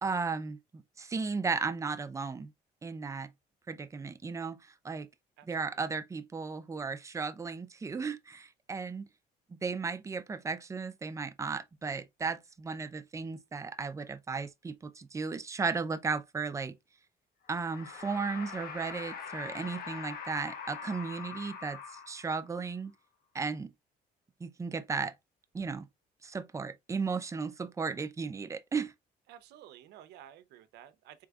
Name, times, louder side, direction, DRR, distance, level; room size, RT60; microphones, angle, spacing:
voice 1, 0.0-2.5 2.8-3.3 3.7-5.1 5.5-9.1 9.6-16.8 17.5-22.9 23.3-23.7 24.4-25.1 25.5-25.9 26.2-28.9, right 4 dB, 20° right, 0.5 m, -35 dB
voice 2, 5.4-5.9 29.3-31.3, right 11 dB, 85° right, 0.6 m, -53 dB
sound 1, 17.4-22.5, left 6 dB, 60° left, 1.0 m, -43 dB
4.6 x 3.4 x 2.3 m
cardioid pair, 110°, 17 cm